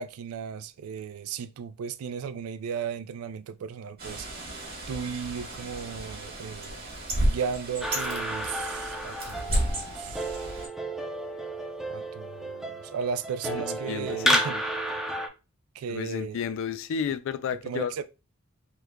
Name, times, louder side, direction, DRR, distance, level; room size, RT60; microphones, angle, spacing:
voice 1, 0.0-4.3 4.9-6.8 7.2-10.5 11.9-14.6 15.7-16.4 17.6-18.0, right 6 dB, 80° right, 0.3 m, -35 dB
Bird, 4.0-10.7, right 1 dB, 45° right, 1.2 m, -32 dB
sound 1, 7.8-15.3, right 1 dB, ahead, 0.4 m, -31 dB
voice 2, 13.5-14.6 15.9-18.0, left 7 dB, 65° left, 0.3 m, -32 dB
3.0 x 2.2 x 3.5 m
head